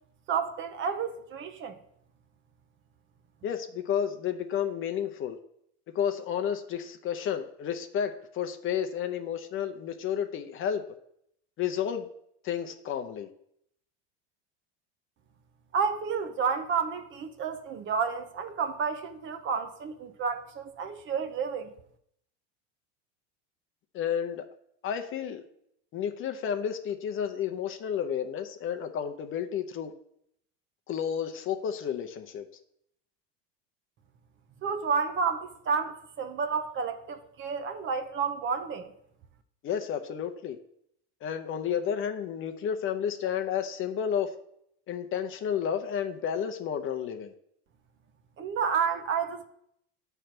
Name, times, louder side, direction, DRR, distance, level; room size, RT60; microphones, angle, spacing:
voice 1, 0.3-1.8 15.7-21.7 34.6-38.9 48.4-49.5, right 6 dB, 35° right, 0.7 m, -30 dB
voice 2, 3.4-5.4 5.9-10.8 11.6-12.1 12.4-13.3 23.9-24.4 24.8-25.4 25.9-29.9 30.9-32.5 39.6-40.6 41.2-44.3 44.9-47.3, left 8 dB, 40° left, 0.7 m, -31 dB
9.0 x 3.4 x 5.9 m
supercardioid pair, 130°, 34 cm